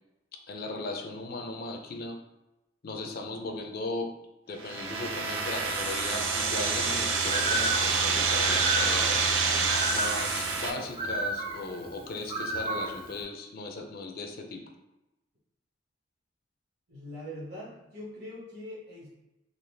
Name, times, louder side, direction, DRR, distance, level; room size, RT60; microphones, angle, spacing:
voice 1, 0.5-2.2 2.8-4.1 4.5-14.6, left 2 dB, 50° left, 4 dB, 0.4 m, -37 dB
sound 1, 4.6-10.7, right 4 dB, 90° right, 0.5 m, -27 dB
Bird, 7.2-13.2, right 1 dB, 30° right, 0.5 m, -34 dB
voice 2, 16.9-19.1, left 1 dB, 55° right, -8 dB, 1.1 m, -42 dB
3.9 x 2.4 x 3.2 m, 0.95 s
head